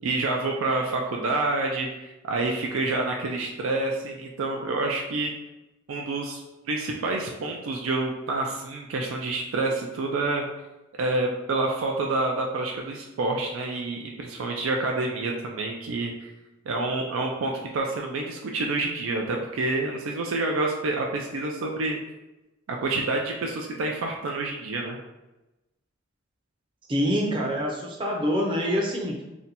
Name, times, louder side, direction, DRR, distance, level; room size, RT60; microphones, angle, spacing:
voice 1, 0.0-5.3 5.9-6.4 6.7-10.5 11.0-16.3 16.7-22.0 22.7-25.0, right 2 dB, 90° right, 1 dB, 0.4 m, -28 dB
voice 2, 26.9-29.2, equal, 25° right, -1 dB, 0.5 m, -26 dB
2.7 x 2.2 x 4.0 m, 1.0 s
head